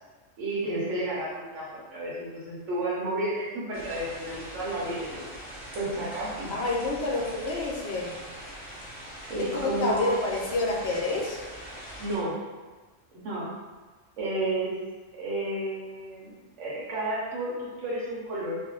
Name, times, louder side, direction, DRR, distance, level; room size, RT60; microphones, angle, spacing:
voice 1, 0.4-5.3 5.7-6.5 9.3-10.1 12.0-12.4 13.1-13.5 14.2-14.7 15.2-16.3 16.6-18.5, right 1 dB, 75° right, -7 dB, 1.0 m, -31 dB
sound 1, 3.7-12.2, equal, 10° left, 0.5 m, -42 dB
voice 2, 6.5-8.1 9.4-11.4, left 2 dB, 65° left, -2 dB, 0.8 m, -28 dB
2.5 x 2.1 x 3.7 m, 1.3 s
omnidirectional pair, 1.3 m